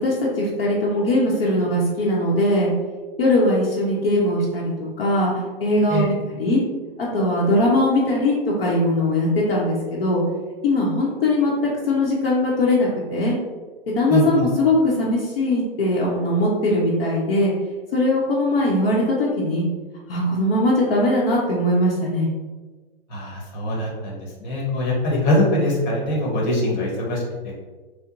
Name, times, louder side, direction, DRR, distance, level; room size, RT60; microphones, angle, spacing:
voice 1, 0.0-2.7 3.2-6.6 7.0-10.2 10.6-11.5 11.9-13.4 13.9-17.5 17.9-19.7 20.1-22.3, left 1 dB, 70° left, -5 dB, 0.9 m, -20 dB
voice 2, 14.1-14.5 23.1-27.5, left 1 dB, 45° left, -3 dB, 1.1 m, -23 dB
4.4 x 2.1 x 2.5 m, 1.3 s
hypercardioid pair, 150°, 31 cm